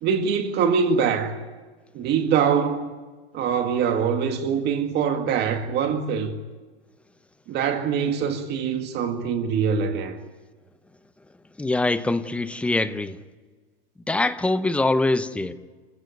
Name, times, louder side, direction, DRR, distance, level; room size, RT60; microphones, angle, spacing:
voice 1, 0.0-1.4 1.9-2.9 3.3-6.3 7.5-10.2, right 6 dB, 30° right, 1.9 m, -23 dB
voice 2, 11.6-13.2 14.1-15.5, left 2 dB, 5° left, 0.7 m, -23 dB
28.5 x 16.0 x 9.3 m
hypercardioid pair, 145°, 34 cm